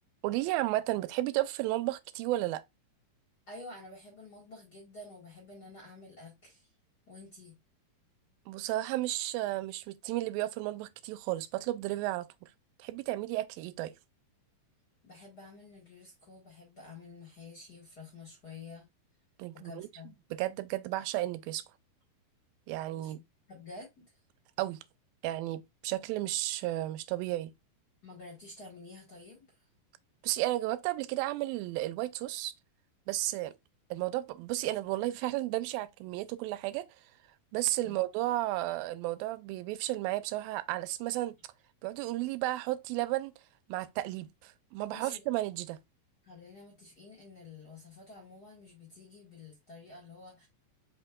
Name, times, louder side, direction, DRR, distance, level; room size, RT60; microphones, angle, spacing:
voice 1, 0.2-2.6 8.5-12.3 12.8-13.9 19.4-19.9 20.3-21.6 22.7-23.2 24.6-24.8 25.2-27.5 30.2-32.5 33.1-33.5 33.9-36.9 37.5-41.4 41.8-43.3 43.7-45.8, right 16 dB, 90° right, 2.3 m, -33 dB
voice 2, 3.5-6.7 7.1-7.6 15.0-18.9 19.6-20.1 23.0-24.1 28.0-29.7 37.8-38.0 44.9-45.2 46.2-50.5, left 3 dB, 45° left, 1.4 m, -50 dB
5.3 x 4.5 x 2.3 m
omnidirectional pair, 4.1 m